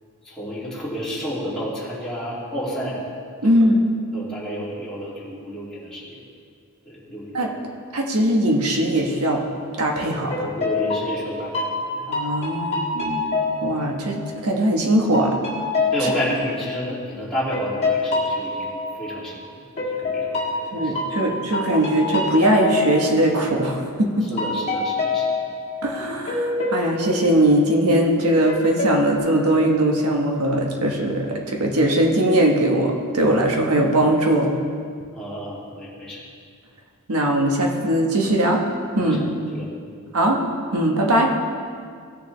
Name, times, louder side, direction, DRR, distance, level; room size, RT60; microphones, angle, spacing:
voice 1, 0.2-3.0 3.4-3.6 4.1-6.2 6.8-7.3 10.1-12.0 15.9-19.6 19.9-20.9 24.2-25.3 35.1-36.2 39.0-39.2 39.5-40.0, equal, 5° left, -9 dB, 2.6 m, -31 dB
voice 2, 3.4-3.8 7.3-7.5 7.9-9.4 9.8-10.3 12.1-13.3 13.6-15.4 16.0-16.1 20.7-24.1 25.8-34.5 37.1-38.6 38.9-39.2 40.1-40.4 40.7-41.3, right 1 dB, 85° right, 1 dB, 1.3 m, -20 dB
sound 1, 9.6-9.9 10.3-14.6 15.1-19.4 19.8-24.0 24.4-28.1 28.5-29.2, left 3 dB, 30° left, 1.6 m, -27 dB
16.0 x 6.8 x 3.3 m, 2.1 s
head